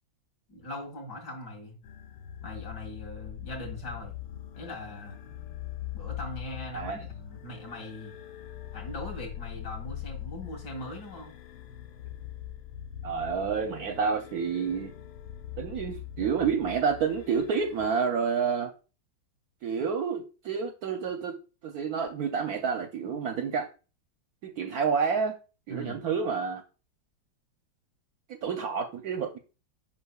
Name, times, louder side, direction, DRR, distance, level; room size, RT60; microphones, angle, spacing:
voice 1, 0.5-1.8 2.4-4.1 4.6-5.2 5.9-8.1 8.7-11.3 25.7-26.0, left 1 dB, 60° left, 2.5 m, -40 dB
sound 1, 1.8-17.9, left 12 dB, 85° left, 1.4 m, -42 dB
voice 2, 13.0-14.9 15.6-18.7 19.6-21.3 21.6-23.7 24.4-25.3 25.7-26.6 28.3-29.4, right 6 dB, 70° right, 0.9 m, -29 dB
7.3 x 5.7 x 2.3 m
omnidirectional pair, 2.1 m